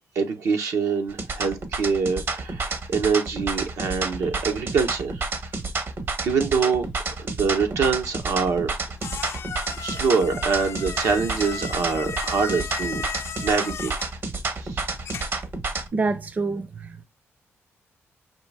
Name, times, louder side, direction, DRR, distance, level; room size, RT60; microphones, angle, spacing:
voice 1, 0.1-5.2 6.2-6.9 7.2-8.7 9.8-13.0 13.4-13.9 14.6-14.8, right 5 dB, 80° right, 1.1 m, -24 dB
sound 1, 1.1-15.9, right 3 dB, 50° right, 0.9 m, -30 dB
sound 2, 8.2-15.5, left 7 dB, 60° left, 0.4 m, -36 dB
voice 2, 15.9-17.0, right 3 dB, 35° right, 0.5 m, -27 dB
5.7 x 2.5 x 3.3 m
cardioid pair, 90°, 5 cm